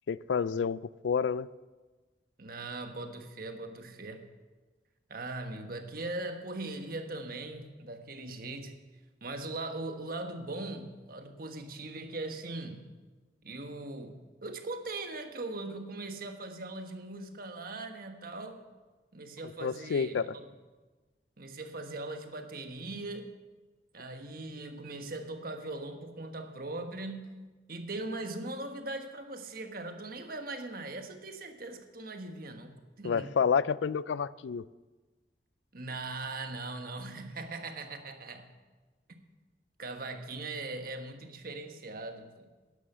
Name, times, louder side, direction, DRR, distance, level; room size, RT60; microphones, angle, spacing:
voice 1, 0.1-1.5 19.6-20.3 33.0-34.7, left 6 dB, 85° left, 19 dB, 0.4 m, -29 dB
voice 2, 2.4-4.3 5.1-8.8 9.2-13.0 13.4-18.7 19.1-20.5 21.4-23.3 23.9-27.4 27.7-33.3 35.7-38.6 39.8-42.5, right 2 dB, 55° right, 6 dB, 1.4 m, -40 dB
11.5 x 11.5 x 6.9 m, 1.3 s
head